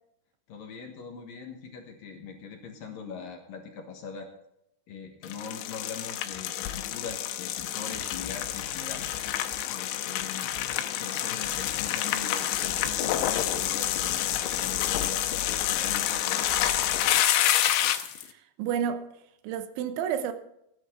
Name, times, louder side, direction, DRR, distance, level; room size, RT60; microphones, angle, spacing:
voice 1, 0.5-4.3 4.9-9.1 9.7-10.5 10.9-15.3 15.7-16.4, left 6 dB, 60° left, 2.7 m, -41 dB
sound 1, 5.2-18.2, left 12 dB, 90° left, 3.1 m, -28 dB
voice 2, 18.2-19.0 19.4-20.3, right 8 dB, 90° right, 3.3 m, -30 dB
16.5 x 10.5 x 3.8 m
omnidirectional pair, 5.2 m